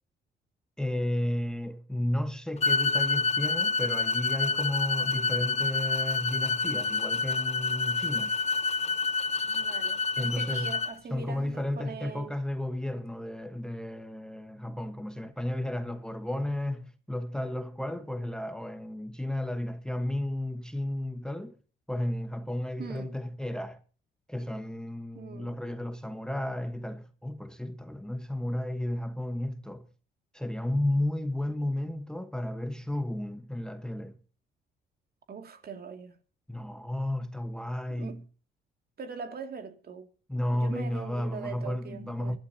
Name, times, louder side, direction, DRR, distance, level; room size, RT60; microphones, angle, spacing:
voice 1, 0.8-8.4 10.2-10.7 11.1-21.6 21.9-23.8 24.3-29.9 30.3-34.2 36.5-38.2 40.3-42.4, left 1 dB, 5° left, 1.3 m, -33 dB
sound 1, 2.6-10.9, left 4 dB, 35° left, 0.9 m, -28 dB
voice 2, 9.4-12.4 22.8-23.2 25.1-25.6 35.3-36.2 37.9-38.2 39.0-40.1 40.5-42.4, right 5 dB, 50° right, 2.5 m, -42 dB
24.0 x 12.0 x 2.8 m
cardioid pair, 90°, 20 cm